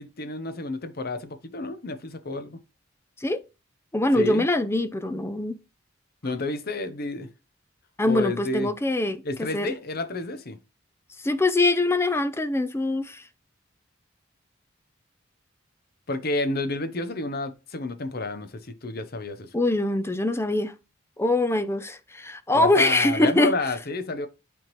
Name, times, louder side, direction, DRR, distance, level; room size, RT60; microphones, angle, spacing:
voice 1, 0.0-2.6 4.1-4.5 6.2-7.3 8.0-8.7 9.2-10.6 16.1-19.5 22.5-24.3, left 2 dB, 50° left, 0.8 m, -30 dB
voice 2, 3.9-5.6 8.0-9.2 9.5-9.8 11.2-13.2 19.5-20.7 21.2-23.5, left 2 dB, 10° left, 0.5 m, -23 dB
8.8 x 3.6 x 3.0 m
head